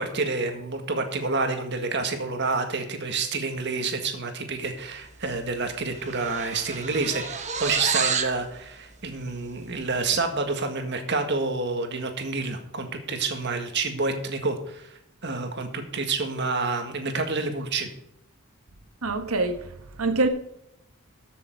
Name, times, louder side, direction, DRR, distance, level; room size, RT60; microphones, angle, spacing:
voice 1, 0.0-17.9, right 3 dB, 50° right, 1.8 m, -28 dB
sound 1, 5.2-5.4 5.7-8.4, right 6 dB, 35° right, 1.1 m, -29 dB
voice 2, 19.0-20.3, right 3 dB, 80° right, 1.4 m, -25 dB
13.5 x 6.9 x 4.7 m
head